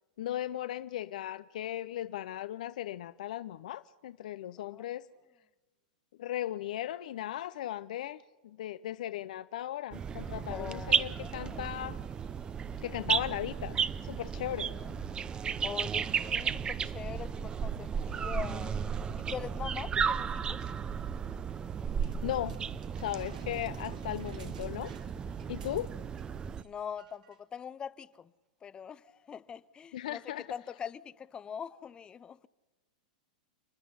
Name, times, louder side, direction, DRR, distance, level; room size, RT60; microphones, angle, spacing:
voice 1, 0.2-5.1 6.2-12.0 12.8-14.7 22.0-22.6 23.0-24.9 25.5-25.9 29.9-30.4, left 13 dB, 70° left, 0.6 m, -37 dB
sound 1, 9.9-26.6, right 7 dB, 20° right, 0.6 m, -34 dB
voice 2, 10.5-11.8 14.6-15.0 15.6-18.8 19.2-20.6 26.6-28.3 28.6-32.5, left 7 dB, 20° left, 0.6 m, -43 dB
sound 2, 22.0-26.3 26.5-26.7 27.0-27.4 28.1-28.2, right 7 dB, 80° right, 1.9 m, -57 dB
30.0 x 10.0 x 9.7 m
hypercardioid pair, 120°, 4 cm